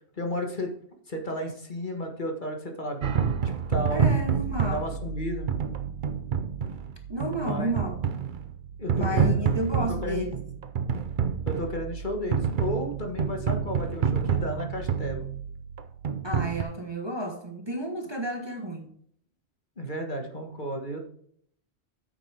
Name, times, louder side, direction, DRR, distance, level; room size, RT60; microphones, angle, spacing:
voice 1, 0.2-0.7 1.1-3.4 3.7-4.1 4.7-5.5 7.3-7.7 8.8-9.4 10.0-10.3 11.5-15.3 19.8-21.0, left 1 dB, 45° left, 3 dB, 1.7 m, -33 dB
sound 1, 3.0-16.6, right 7 dB, 50° right, 0.8 m, -28 dB
voice 2, 3.9-4.8 7.1-8.0 8.9-10.4 16.2-18.9, right 1 dB, 25° right, 2 dB, 1.2 m, -31 dB
8.8 x 8.0 x 3.4 m, 0.63 s
omnidirectional pair, 1.1 m